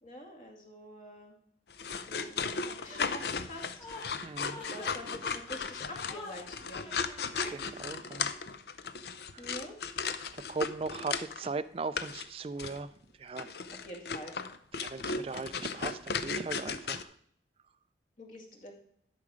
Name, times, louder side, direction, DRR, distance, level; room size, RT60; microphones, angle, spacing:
voice 1, 0.0-1.4 2.1-3.8 4.6-6.9 9.4-9.8 13.8-14.3 18.2-18.7, equal, 45° left, 1 dB, 2.1 m, -46 dB
sound 1, 1.7-11.5 12.0-12.3 12.6-12.8 13.4-17.0, left 5 dB, 65° left, 0.6 m, -36 dB
Chuckle chortle, 2.8-8.0, left 2 dB, 30° left, 2.7 m, -48 dB
voice 2, 4.2-4.7 7.4-8.3 9.3-9.5 10.3-13.6 14.7-17.2, right 4 dB, 30° right, 12 dB, 0.3 m, -39 dB
12.0 x 6.1 x 4.9 m, 0.68 s
head